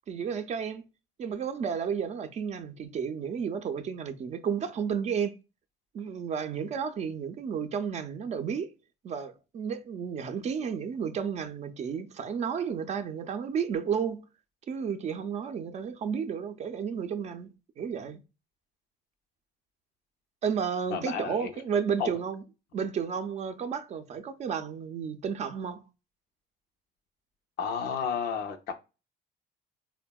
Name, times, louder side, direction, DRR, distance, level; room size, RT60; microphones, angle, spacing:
voice 1, 0.1-0.8 1.2-5.3 5.9-8.7 9.0-14.2 14.7-17.5 17.8-18.2 20.4-22.4 22.7-25.8, right 7 dB, 40° right, 0.4 m, -32 dB
voice 2, 20.9-21.5 22.0-22.1 27.6-28.7, left 7 dB, 80° left, 0.5 m, -31 dB
3.4 x 2.1 x 2.2 m
cardioid pair, 110°, 17 cm